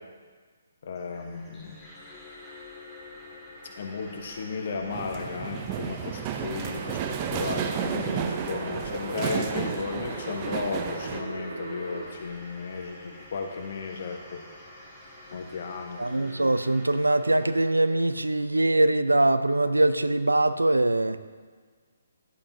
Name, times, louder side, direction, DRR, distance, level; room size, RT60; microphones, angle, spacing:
voice 1, 0.8-1.7 3.8-14.4 15.3-16.0, left 4 dB, 50° left, 3 dB, 1.2 m, -34 dB
sound 1, 1.0-17.9, left 2 dB, 5° left, 1.8 m, -47 dB
sound 2, 4.9-11.2, right 8 dB, 30° right, 0.5 m, -32 dB
sound 3, 6.6-12.1, right 2 dB, 65° right, 1.6 m, -39 dB
voice 2, 16.0-21.2, right 2 dB, 80° right, 12 dB, 0.4 m, -23 dB
11.0 x 8.6 x 2.8 m, 1.5 s
figure-of-eight pair, 135°, 0 cm